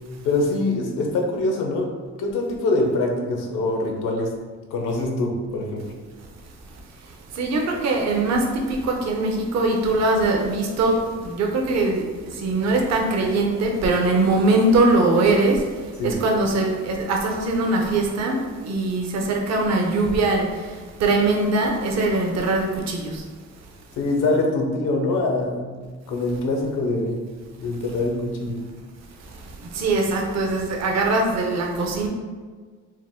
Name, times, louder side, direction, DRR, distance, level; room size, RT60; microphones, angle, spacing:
voice 1, 0.2-1.9 2.2-4.3 4.7-5.8 16.0-16.2 24.0-27.2 27.6-28.6, left 2 dB, 85° left, 1 dB, 0.8 m, -24 dB
voice 2, 6.2-23.7 29.2-32.1, right 2 dB, 60° right, 1 dB, 0.7 m, -22 dB
4.5 x 2.1 x 3.6 m, 1.5 s
cardioid pair, 90°, 30 cm